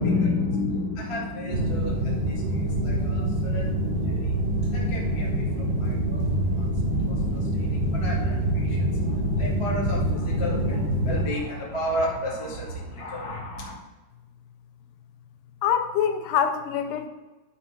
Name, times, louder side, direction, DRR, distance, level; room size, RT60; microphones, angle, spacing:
voice 1, 0.0-13.7, left 2 dB, 20° left, -3 dB, 0.8 m, -32 dB
sound 1, 1.5-11.2, right 1 dB, 45° right, 0.7 m, -25 dB
voice 2, 15.6-17.1, left 8 dB, 85° left, 7 dB, 2.8 m, -24 dB
11.0 x 4.4 x 5.9 m, 1.2 s
omnidirectional pair, 4.7 m